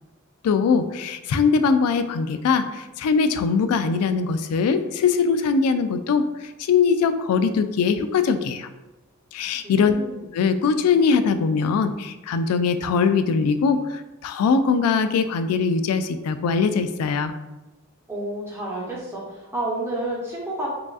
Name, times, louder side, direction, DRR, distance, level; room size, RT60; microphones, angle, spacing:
voice 1, 0.4-8.7 9.3-9.9 10.3-17.3, left 5 dB, 85° left, 11 dB, 0.3 m, -21 dB
voice 2, 9.6-10.2 18.1-20.7, right 1 dB, 10° right, -4 dB, 0.8 m, -30 dB
4.8 x 2.4 x 2.4 m, 1.0 s
head